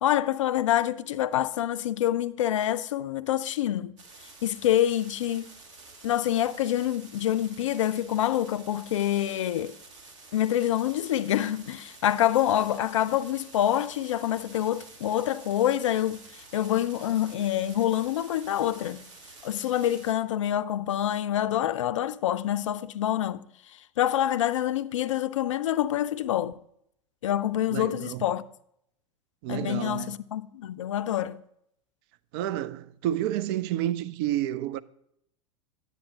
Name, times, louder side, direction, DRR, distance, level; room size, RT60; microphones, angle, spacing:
voice 1, 0.0-4.0 4.4-5.5 6.0-9.7 10.3-16.2 16.5-19.0 19.4-23.4 24.0-26.6 27.2-28.4 29.5-31.4, left 11 dB, 70° left, 0.4 m, -26 dB
sound 1, 4.0-20.1, right 3 dB, 65° right, 1.5 m, -49 dB
voice 2, 27.7-28.3 29.4-30.1 32.3-34.8, right 12 dB, 45° right, 0.4 m, -30 dB
9.6 x 8.2 x 2.8 m
figure-of-eight pair, 90°, 17 cm